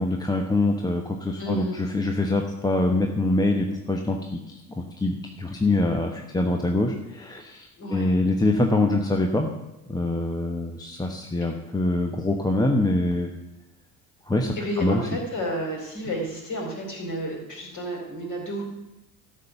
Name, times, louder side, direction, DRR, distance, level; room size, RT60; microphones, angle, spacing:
voice 1, 0.0-9.5 9.9-13.3 14.3-15.2, left 2 dB, 10° left, 3 dB, 1.0 m, -24 dB
voice 2, 1.4-1.8 7.8-8.1 14.6-18.7, equal, 35° left, 0 dB, 4.3 m, -31 dB
13.0 x 5.5 x 6.9 m, 0.94 s
figure-of-eight pair, 65°, 49 cm